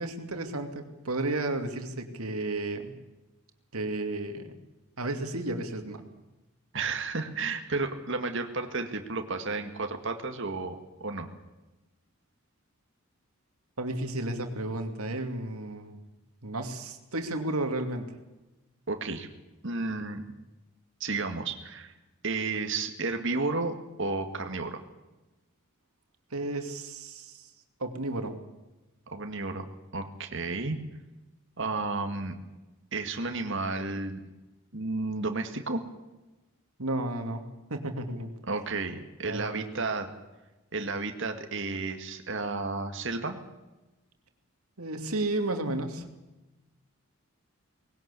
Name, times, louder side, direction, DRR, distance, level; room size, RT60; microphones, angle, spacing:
voice 1, 0.0-2.9 3.7-4.5 5.0-6.0 13.8-16.0 16.4-18.1 26.3-27.5 27.8-28.4 36.8-38.3 39.2-39.7 44.8-46.0, right 2 dB, 85° right, 6 dB, 2.7 m, -33 dB
voice 2, 6.7-11.3 18.9-19.3 19.6-20.3 21.0-21.9 22.2-24.8 29.1-29.7 29.9-30.8 31.6-32.4 32.9-34.2 34.7-35.8 38.5-40.1 40.7-43.4, right 3 dB, 60° right, 6 dB, 2.0 m, -32 dB
20.0 x 18.0 x 8.4 m, 1.1 s
head